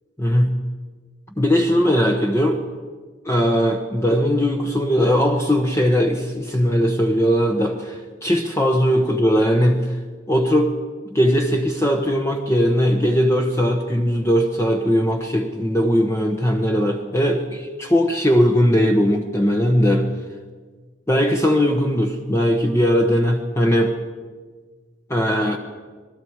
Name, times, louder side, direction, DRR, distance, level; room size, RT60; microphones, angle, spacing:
voice 1, 0.2-0.6 1.4-2.6 3.2-10.0 10.3-10.7 11.1-20.1 21.1-23.9 25.1-25.6, equal, 15° left, 2 dB, 1.2 m, -19 dB
27.0 x 21.0 x 4.8 m, 1.5 s
head